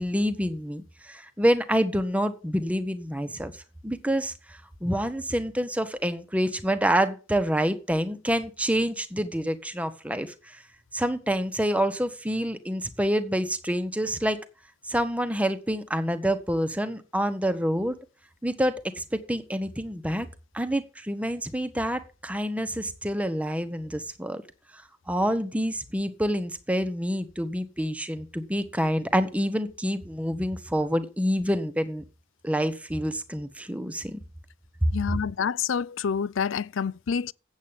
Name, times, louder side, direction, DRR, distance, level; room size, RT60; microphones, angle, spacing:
voice 1, 0.0-3.5 3.8-10.6 10.9-14.4 14.9-18.0 18.4-20.3 20.5-24.4 25.1-32.0 32.4-34.2 34.8-35.2, equal, 5° right, 1.0 m, -27 dB
voice 2, 34.9-37.3, left 6 dB, 75° left, 0.4 m, -28 dB
8.3 x 8.1 x 7.2 m
head